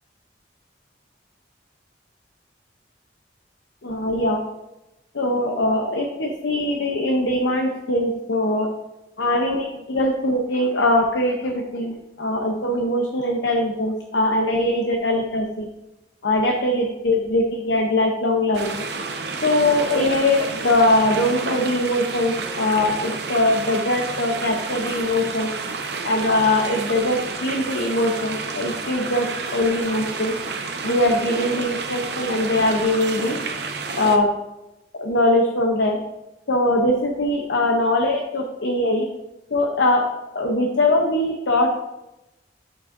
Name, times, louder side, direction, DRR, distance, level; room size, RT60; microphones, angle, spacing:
voice 1, 3.8-4.4 5.1-8.7 9.2-15.7 16.2-18.8 19.4-25.5 26.0-30.3 30.8-33.4 34.0-34.3 34.9-36.0 36.5-39.1 39.5-40.0 40.3-41.8, left 1 dB, 85° left, 2 dB, 0.8 m, -21 dB
sound 1, 18.5-34.2, right 4 dB, 65° right, 0.7 m, -30 dB
8.3 x 6.8 x 2.6 m, 0.95 s
head